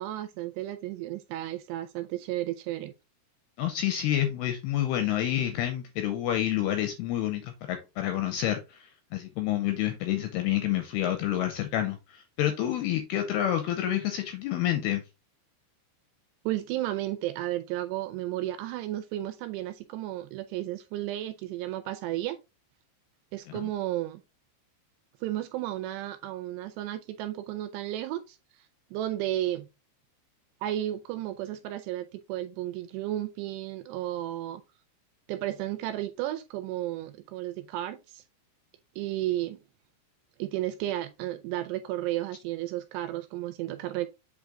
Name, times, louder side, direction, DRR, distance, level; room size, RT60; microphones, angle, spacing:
voice 1, 0.0-2.9 16.5-22.4 23.3-24.2 25.2-28.4 28.9-29.7 30.6-34.6 35.3-38.2 39.0-39.6 40.4-44.1, right 14 dB, 80° right, 2.5 m, -33 dB
voice 2, 3.6-15.0 23.5-23.6, left 12 dB, 80° left, 2.3 m, -28 dB
8.0 x 3.4 x 3.7 m
omnidirectional pair, 5.3 m